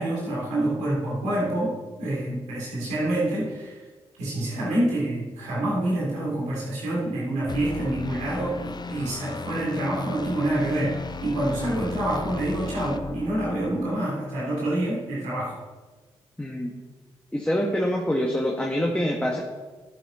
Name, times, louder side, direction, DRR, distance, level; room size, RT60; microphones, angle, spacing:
voice 1, 0.0-3.8 4.2-15.6, right 1 dB, 85° right, -6 dB, 3.6 m, -27 dB
sound 1, 7.5-14.0, left 4 dB, 35° left, 0.6 m, -36 dB
voice 2, 16.4-16.7 17.3-19.4, equal, 10° left, -1 dB, 1.5 m, -25 dB
11.0 x 8.9 x 4.3 m, 1.3 s
hypercardioid pair, 45°, 12 cm